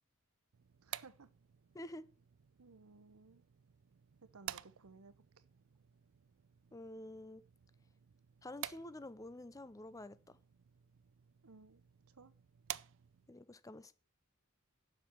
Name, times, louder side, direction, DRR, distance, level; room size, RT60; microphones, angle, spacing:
sound 1, 0.5-13.4, right 12 dB, 65° right, 0.4 m, -52 dB
voice 1, 0.8-1.3 2.6-3.4 4.2-5.4 11.4-12.3, right 4 dB, 90° right, 0.9 m, -59 dB
voice 2, 6.7-7.4 8.4-10.4 13.3-14.0, left 1 dB, 15° left, 0.5 m, -49 dB
7.5 x 6.1 x 7.1 m
head